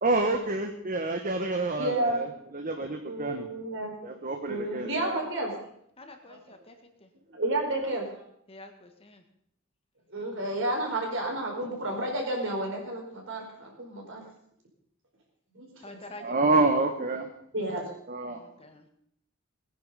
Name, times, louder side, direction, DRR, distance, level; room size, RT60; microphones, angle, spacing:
voice 1, 0.0-3.5 4.0-5.2 16.2-17.3 18.1-18.4, right 2 dB, 40° right, 4 dB, 1.2 m, -28 dB
voice 2, 1.8-2.2 3.1-3.9 4.5-5.5 6.3-6.6 7.3-8.1 10.1-14.2 15.5-16.0 17.5-17.9, right 1 dB, 65° right, 0 dB, 4.6 m, -31 dB
voice 3, 6.0-6.7 8.5-9.2 15.8-16.2 18.3-18.8, left 2 dB, 30° left, 5 dB, 1.6 m, -47 dB
19.5 x 10.0 x 5.5 m, 0.71 s
head